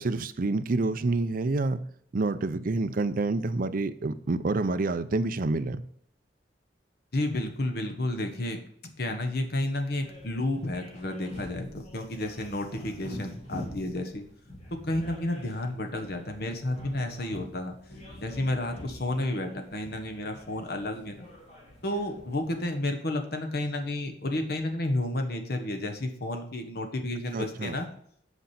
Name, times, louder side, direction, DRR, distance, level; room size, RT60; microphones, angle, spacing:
voice 1, 0.0-1.8 2.1-5.8 27.3-27.8, right 3 dB, 50° right, 11 dB, 0.5 m, -28 dB
voice 2, 7.1-8.6 8.8-14.2 14.8-17.8 18.2-21.3 21.8-27.9, left 1 dB, 60° left, 5 dB, 1.3 m, -31 dB
sound 1, 9.8-22.7, left 1 dB, 40° left, 2.6 m, -46 dB
8.2 x 5.1 x 5.8 m, 0.65 s
head